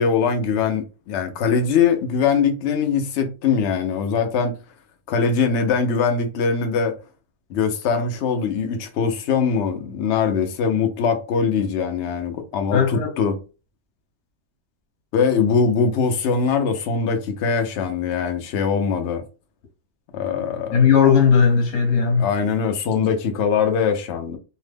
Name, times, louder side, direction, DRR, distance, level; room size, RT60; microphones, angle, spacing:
voice 1, 0.0-4.5 5.1-7.0 7.5-13.4 15.1-19.2 20.1-20.9 22.2-24.4, left 6 dB, 90° left, 0.6 m, -22 dB
voice 2, 12.7-13.1 20.7-22.3, left 6 dB, 50° left, 1.1 m, -17 dB
2.7 x 2.1 x 3.3 m
omnidirectional pair, 1.7 m